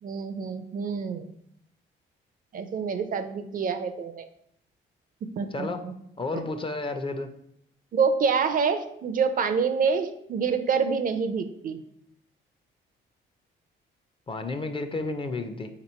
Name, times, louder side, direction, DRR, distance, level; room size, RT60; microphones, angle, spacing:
voice 1, 0.0-1.2 2.5-4.3 5.4-5.9 6.3-6.5 7.9-11.8, right 5 dB, 45° right, 9 dB, 0.4 m, -27 dB
voice 2, 5.5-5.9 6.2-7.3 14.3-15.7, left 3 dB, 25° left, 8 dB, 0.4 m, -31 dB
3.3 x 2.9 x 4.2 m, 0.72 s
cardioid pair, 90°, 20 cm